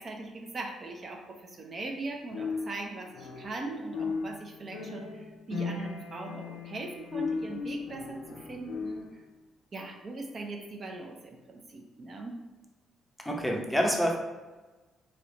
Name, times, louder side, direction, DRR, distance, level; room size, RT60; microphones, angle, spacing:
voice 1, 0.0-9.2 9.7-12.4, right 2 dB, 45° right, 2 dB, 0.6 m, -40 dB
sound 1, 2.3-3.7 3.9-9.2, left 4 dB, 75° left, 0.5 m, -36 dB
voice 2, 13.2-14.2, equal, 5° left, 0 dB, 0.7 m, -27 dB
3.2 x 2.8 x 4.0 m, 1.2 s
cardioid pair, 90°, 0 cm